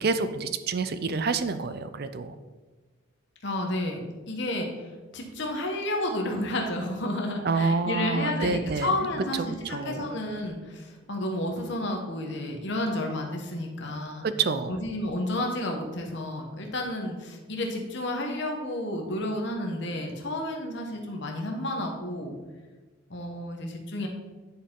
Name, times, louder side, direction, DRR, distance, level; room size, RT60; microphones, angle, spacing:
voice 1, 0.0-2.3 7.4-8.9 9.6-10.1 14.2-14.8, right 4 dB, 45° right, 11 dB, 0.4 m, -27 dB
voice 2, 3.4-14.3 14.7-22.3 23.1-24.1, left 1 dB, 55° left, 2 dB, 1.1 m, -31 dB
10.0 x 4.5 x 3.8 m, 1.3 s
head